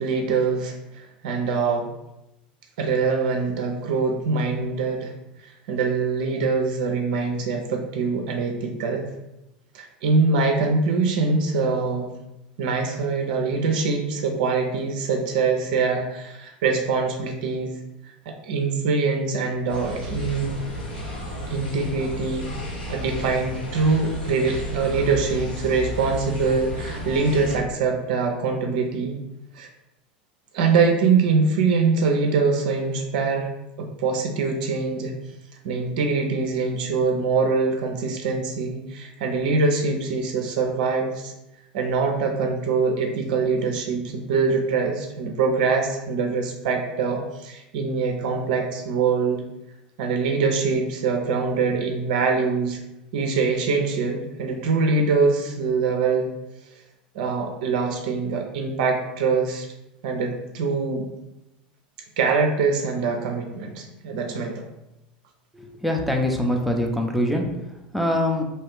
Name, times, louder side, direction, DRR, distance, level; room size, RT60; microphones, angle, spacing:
voice 1, 0.0-1.9 2.8-5.1 5.4-9.1 9.7-12.1 12.6-17.7 18.3-20.7 21.5-22.5 22.9-29.2 29.5-29.7 30.5-33.5 33.8-35.1 35.6-41.3 41.7-49.4 50.0-52.8 53.1-56.3 57.1-59.7 60.0-61.1 62.2-64.6, right 4 dB, 60° right, 3 dB, 0.4 m, -23 dB
sound 1, 19.7-27.6, left 1 dB, 70° left, 0.9 m, -33 dB
voice 2, 65.5-67.5 67.9-68.4, left 1 dB, ahead, 1 dB, 0.5 m, -23 dB
2.5 x 2.3 x 3.5 m, 0.91 s
figure-of-eight pair, 80°, 5 cm